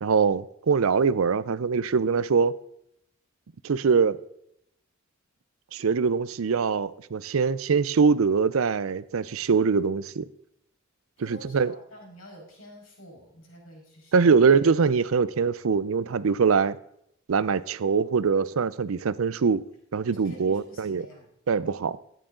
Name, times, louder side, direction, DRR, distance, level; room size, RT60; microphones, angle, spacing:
voice 1, 0.0-2.5 3.6-4.2 5.7-10.2 11.2-11.7 14.1-16.8 17.3-19.6 19.9-21.1 21.5-22.0, right 5 dB, 80° right, 0.5 m, -23 dB
voice 2, 11.2-14.3 20.1-21.3, equal, 75° left, 5.0 m, -48 dB
12.5 x 10.0 x 3.8 m
head